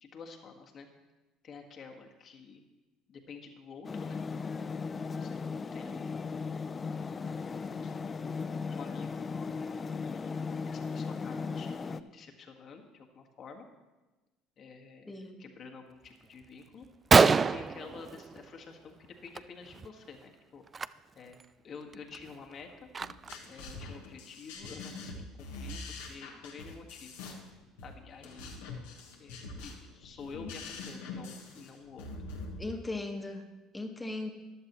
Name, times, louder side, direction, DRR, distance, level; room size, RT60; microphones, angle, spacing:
voice 1, 0.0-0.9 1.4-2.6 3.1-4.2 4.5-4.7 5.2-6.3 7.0-8.0 8.7-9.2 9.9-13.6 14.6-16.9 17.5-20.6 21.1-22.9 23.5-27.4 27.8-28.8 29.2-32.1, left 5 dB, 50° left, 3 dB, 1.7 m, -49 dB
sound 1, 3.8-12.0, left 5 dB, 30° left, 0.5 m, -37 dB
voice 2, 15.1-15.4 32.6-33.5 33.7-34.3, left 2 dB, 15° left, 4 dB, 1.5 m, -37 dB
Gunshot gunfire, 16.4-16.5 16.8-16.9 17.1-18.7 19.0-19.4 19.6-19.9 20.7-20.9 21.4-21.5 21.9-23.5, right 5 dB, 30° right, 0.3 m, -26 dB
sound 2, 23.0-32.6, left 3 dB, 80° left, 1.6 m, -44 dB
14.0 x 11.0 x 3.1 m, 1.1 s
hypercardioid pair, 70°, 0 cm